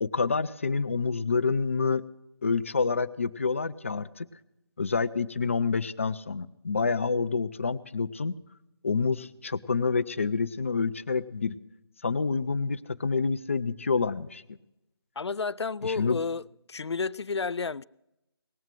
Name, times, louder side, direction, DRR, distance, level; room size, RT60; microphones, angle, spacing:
voice 1, 0.0-2.0 2.4-4.3 4.8-8.3 8.8-11.5 12.0-14.4 15.8-16.2, left 4 dB, 30° left, 0.4 m, -28 dB
voice 2, 15.2-16.4 16.7-17.8, left 4 dB, 90° left, 0.4 m, -31 dB
19.0 x 7.2 x 7.5 m
figure-of-eight pair, 165°, 14 cm